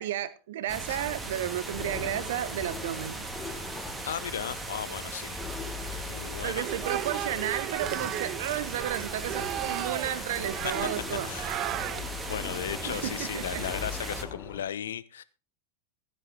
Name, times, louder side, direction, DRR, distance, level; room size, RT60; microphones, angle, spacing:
voice 1, 0.0-3.3 6.4-11.3 12.9-13.7, right 12 dB, 55° right, 1.0 m, -33 dB
sound 1, 0.7-14.2, right 2 dB, 10° right, 1.9 m, -38 dB
sound 2, 1.6-14.6, left 4 dB, 15° left, 3.1 m, -43 dB
voice 2, 4.0-5.4 6.0-6.7 10.1-10.3 11.2-11.6 12.3-15.2, left 9 dB, 65° left, 0.7 m, -36 dB
sound 3, 6.6-12.3, right 14 dB, 35° right, 0.5 m, -35 dB
15.5 x 9.8 x 3.7 m
figure-of-eight pair, 90°, 0 cm